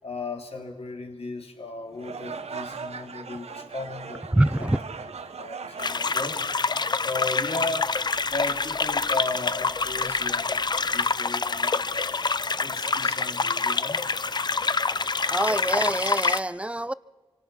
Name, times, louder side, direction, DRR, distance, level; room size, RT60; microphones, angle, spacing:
voice 1, 0.0-4.7 5.4-8.0 8.3-12.2 12.6-14.0 15.2-15.3, left 3 dB, 70° left, 3 dB, 3.6 m, -36 dB
sound 1, 1.9-7.2, right 5 dB, 85° right, 1.3 m, -39 dB
voice 2, 4.3-4.8 15.3-16.9, right 1 dB, 10° right, 18 dB, 0.6 m, -24 dB
sound 2, 5.8-16.4, left 4 dB, 45° left, 0.7 m, -26 dB
27.0 x 25.5 x 5.8 m, 1.3 s
wide cardioid pair, 90°, 11 cm